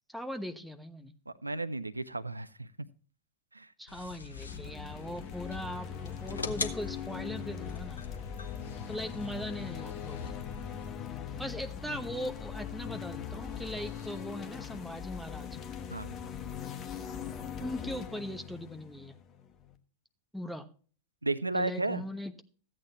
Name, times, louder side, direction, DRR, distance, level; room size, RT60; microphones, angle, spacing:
voice 1, 0.1-1.1 3.8-8.0 8.9-10.3 11.4-15.5 17.6-19.1 20.3-20.7 21.5-22.4, equal, ahead, 6 dB, 1.0 m, -40 dB
voice 2, 1.3-2.7 3.5-3.7 15.9-16.2 21.2-22.0, right 2 dB, 85° right, 16 dB, 0.5 m, -33 dB
sound 1, 3.9-10.9, left 4 dB, 75° left, 1.0 m, -43 dB
sound 2, 4.3-19.7, left 8 dB, 30° left, 1.1 m, -41 dB
sound 3, 8.6-10.3 12.6-12.8 13.2-14.4 15.2-15.4, left 6 dB, 50° left, 4.9 m, -54 dB
14.5 x 8.8 x 3.0 m, 0.41 s
figure-of-eight pair, 90°, 0 cm